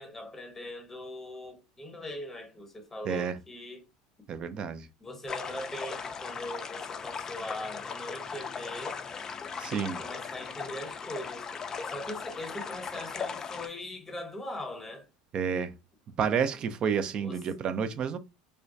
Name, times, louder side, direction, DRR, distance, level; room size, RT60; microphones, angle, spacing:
voice 1, 0.0-3.9 5.0-9.0 9.8-11.5 11.8-15.1 17.2-17.4, left 1 dB, 10° left, 0.9 m, -41 dB
voice 2, 3.0-3.4 4.3-4.9 9.6-10.0 15.3-15.7 16.2-18.2, right 7 dB, 40° right, 0.4 m, -30 dB
sound 1, 5.3-13.7, left 5 dB, 30° left, 0.3 m, -38 dB
2.2 x 2.2 x 2.6 m
hypercardioid pair, 80°, 2 cm